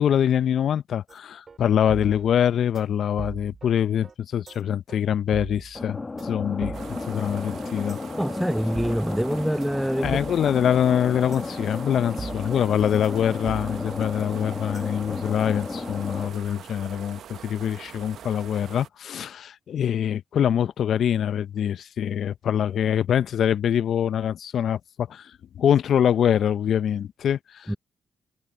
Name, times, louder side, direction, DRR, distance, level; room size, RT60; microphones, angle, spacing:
voice 1, 0.0-8.0 10.0-27.8, left 9 dB, 65° left, 0.7 m, -24 dB
sound 1, 1.1-1.2 1.5-1.6 1.9-2.4 2.7-2.9 3.2-3.7 4.0-4.1 4.5-4.6 4.9-5.0 5.3-5.9 6.2-6.3 6.6-7.2 7.5-7.6 7.9-8.0 8.3-8.4 8.7-9.3 9.6-9.7 10.0-10.6 10.9-11.0 11.3-11.4 11.8-11.9 12.2-12.7 13.0-13.1 13.5-14.0 14.3-14.4 14.7-14.9, right 5 dB, 50° right, 5.3 m, -39 dB
sound 2, 5.7-16.3, left 3 dB, 35° left, 2.0 m, -33 dB
sound 3, 6.7-18.9, right 9 dB, 70° right, 1.3 m, -44 dB
voice 2, 8.2-10.1 27.7-27.8, equal, 5° right, 0.4 m, -25 dB
hypercardioid pair, 40°, 0 cm